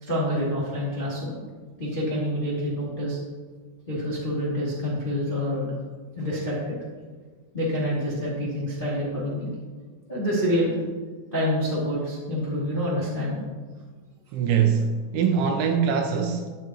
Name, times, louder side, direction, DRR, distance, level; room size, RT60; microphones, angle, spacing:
voice 1, 0.0-1.4 1.8-3.2 3.9-5.7 6.1-6.8 7.5-9.5 10.1-10.7 11.3-13.4, equal, 25° left, -7 dB, 1.1 m, -27 dB
voice 2, 14.3-16.6, right 7 dB, 80° right, 5 dB, 2.9 m, -23 dB
12.5 x 10.5 x 3.1 m, 1.4 s
omnidirectional pair, 5.9 m